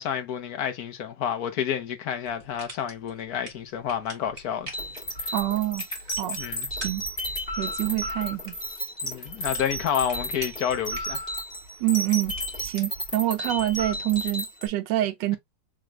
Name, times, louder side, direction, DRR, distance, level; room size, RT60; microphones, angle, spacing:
voice 1, 0.0-4.8 5.2-5.3 6.4-6.7 9.0-11.3, left 9 dB, 60° left, 1.3 m, -29 dB
sound 1, 2.2-14.1, right 1 dB, 30° right, 2.1 m, -46 dB
sound 2, 4.7-14.7, equal, 30° left, 2.4 m, -33 dB
voice 2, 5.3-5.8 6.2-6.4 6.8-7.0 7.6-8.5 11.8-12.3 12.6-15.4, right 15 dB, 80° right, 1.3 m, -26 dB
3.7 x 3.4 x 3.1 m
omnidirectional pair, 1.9 m